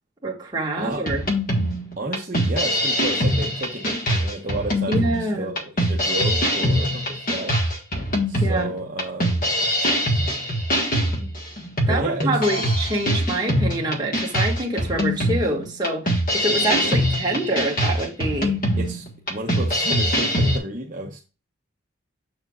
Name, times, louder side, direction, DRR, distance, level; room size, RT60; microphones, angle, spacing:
voice 1, 0.2-1.2 4.9-5.5 8.4-8.7 11.9-18.6, right 1 dB, 20° right, 1.7 m, -26 dB
sound 1, 1.1-20.6, equal, 45° left, 1.5 m, -23 dB
voice 2, 2.0-7.6 8.3-9.5 10.9-11.4 11.8-12.7 16.6-17.0 18.8-21.2, right 1 dB, 40° right, 0.9 m, -32 dB
7.0 x 6.7 x 2.4 m
head